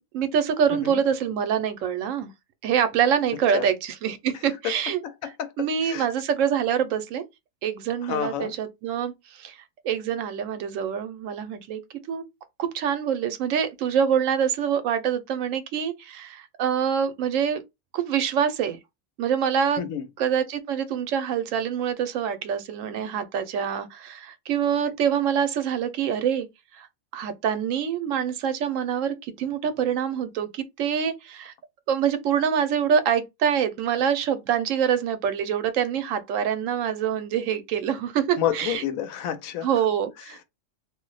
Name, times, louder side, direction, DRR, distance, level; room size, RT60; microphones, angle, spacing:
voice 1, 0.0-2.3 2.6-5.0 5.6-7.2 7.6-9.6 9.8-11.8 12.1-12.2 12.6-17.6 17.9-18.8 19.2-19.8 20.2-26.5 26.7-26.9 27.1-31.5 31.9-38.8 39.6-40.4, right 8 dB, 75° right, 0.9 m, -25 dB
voice 2, 0.7-1.0 3.5-3.7 4.6-4.7 5.0-6.1 8.0-8.5 19.8-20.1 38.4-39.7, left 10 dB, 90° left, 1.0 m, -29 dB
2.4 x 2.1 x 3.8 m
omnidirectional pair, 1.4 m